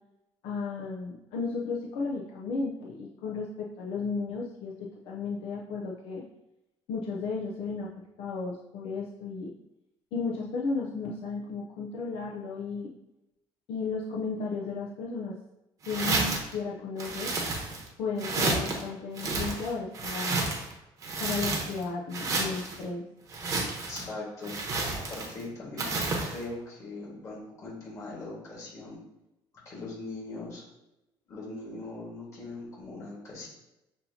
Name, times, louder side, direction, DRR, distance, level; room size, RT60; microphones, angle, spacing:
voice 1, 0.4-6.2 6.9-7.9 8.2-9.5 10.1-12.9 13.7-15.4 15.9-17.3 18.0-20.4 21.2-23.0, left 4 dB, 70° left, -2 dB, 0.5 m, -34 dB
sound 1, 15.8-16.5 17.0-17.9 18.2-18.8 19.1-20.7 21.0-21.8 22.1-22.8 23.3-24.1 24.4-25.4 25.8-26.4, right 3 dB, 35° right, 0.9 m, -30 dB
voice 2, 23.6-29.0 29.6-30.6 31.3-33.5, left 2 dB, 30° left, -4 dB, 1.6 m, -41 dB
7.0 x 2.7 x 2.7 m, 0.94 s
cardioid pair, 170°, 10 cm